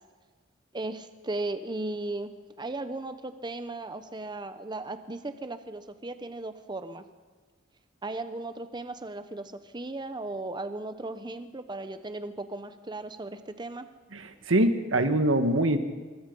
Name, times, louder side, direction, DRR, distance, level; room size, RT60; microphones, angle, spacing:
voice 1, 0.7-7.0 8.0-13.9, right 2 dB, 25° right, 10 dB, 0.9 m, -36 dB
voice 2, 14.1-15.8, right 1 dB, 90° right, 8 dB, 1.7 m, -24 dB
24.0 x 24.0 x 5.5 m, 1.4 s
head